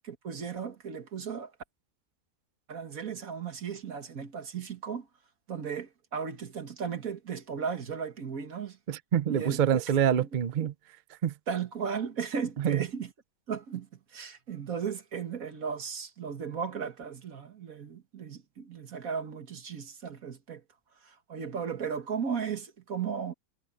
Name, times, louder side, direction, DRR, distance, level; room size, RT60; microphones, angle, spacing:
voice 1, 0.0-1.5 2.7-5.1 5.5-8.8 9.3-9.8 10.2-10.3 11.5-13.1 13.5-20.6 21.0-23.3, right 6 dB, 55° right, 2.0 m, -36 dB
voice 2, 8.9-10.7 11.2-11.3 12.6-12.8, right 9 dB, 90° right, 0.4 m, -26 dB
omnidirectional pair, 1.7 m